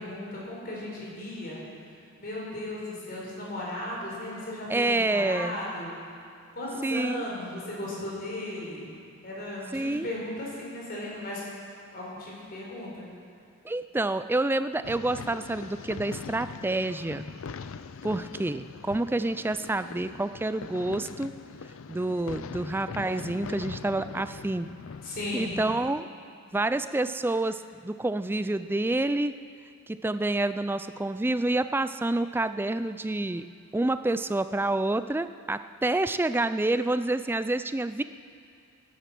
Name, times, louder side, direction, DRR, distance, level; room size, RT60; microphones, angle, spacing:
voice 1, 0.0-1.6 2.2-6.0 6.5-8.9 9.2-11.4 11.9-13.1 25.0-25.6, left 1 dB, 45° left, -4 dB, 4.3 m, -36 dB
voice 2, 4.7-5.6 6.8-7.2 9.7-10.1 13.6-17.3 18.0-21.3 21.9-24.7 25.3-26.1 26.5-29.4 29.9-33.5 33.7-38.0, right 2 dB, 10° right, 12 dB, 0.3 m, -28 dB
sound 1, 14.8-26.0, left 5 dB, 70° left, 0.4 m, -42 dB
15.5 x 10.5 x 6.0 m, 2.4 s
head